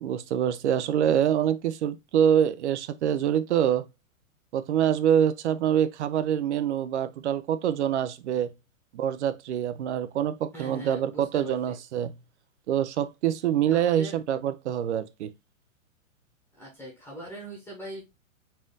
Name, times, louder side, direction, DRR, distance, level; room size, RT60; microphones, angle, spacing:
voice 1, 0.0-3.9 4.5-8.5 8.9-12.1 12.7-15.3, right 9 dB, 55° right, 0.5 m, -25 dB
voice 2, 10.5-11.7 13.7-14.2 16.5-18.2, right 1 dB, 5° left, 1.0 m, -41 dB
4.2 x 2.5 x 3.8 m
hypercardioid pair, 155°, 42 cm